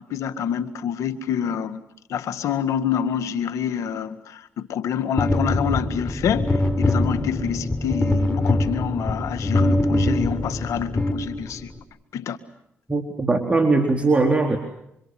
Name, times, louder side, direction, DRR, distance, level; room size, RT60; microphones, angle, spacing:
voice 1, 0.0-1.8 2.1-11.7 12.1-12.4, left 8 dB, 75° left, 12 dB, 1.9 m, -27 dB
sound 1, 5.2-11.8, left 1 dB, 15° left, 4.5 m, -23 dB
voice 2, 12.9-14.6, right 3 dB, 25° right, 3 dB, 3.8 m, -20 dB
27.0 x 25.5 x 7.7 m, 0.78 s
supercardioid pair, 55°, 5 cm